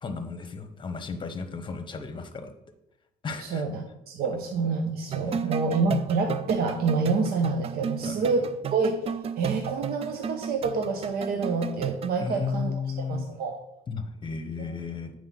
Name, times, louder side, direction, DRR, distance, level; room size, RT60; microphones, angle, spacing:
voice 1, 0.0-2.5 3.2-3.7 5.2-5.6 8.0-8.2 12.2-13.3 13.9-15.1, left 5 dB, 30° left, 8 dB, 0.9 m, -34 dB
voice 2, 3.4-13.6 14.6-14.7, right 4 dB, 65° right, 4 dB, 0.8 m, -28 dB
sound 1, 5.1-12.1, right 7 dB, 35° right, 0.4 m, -33 dB
8.6 x 4.8 x 4.0 m, 0.86 s
cardioid pair, 110°, 17 cm